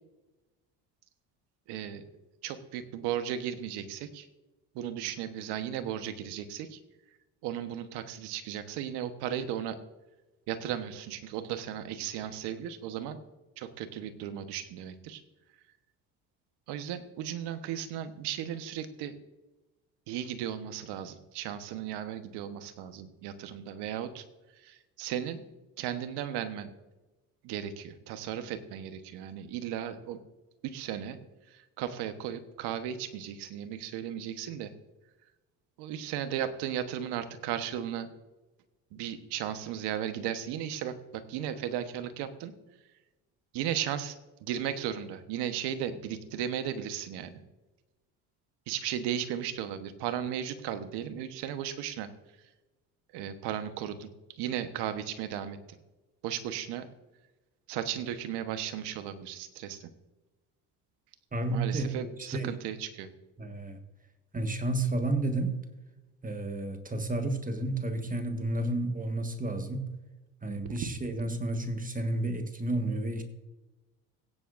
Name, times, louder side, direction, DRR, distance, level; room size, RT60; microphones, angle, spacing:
voice 1, 1.7-2.0 2.4-4.3 4.7-6.8 7.4-9.8 10.5-13.2 13.6-15.2 16.7-19.1 20.1-24.2 24.6-25.4 25.8-26.7 27.4-30.2 30.6-31.2 31.5-34.7 35.8-38.1 38.9-42.5 43.5-44.2 44.4-47.4 48.7-52.1 53.1-54.1 54.4-55.8 56.2-56.9 57.7-59.9 61.4-63.1 70.7-70.9, right 10 dB, 75° right, 10 dB, 1.2 m, -35 dB
voice 2, 61.3-62.5 63.4-63.8 64.3-65.6 66.2-69.9 70.4-73.2, right 2 dB, 20° right, 7 dB, 1.5 m, -31 dB
17.5 x 9.7 x 2.6 m, 1.1 s
supercardioid pair, 75°, 40 cm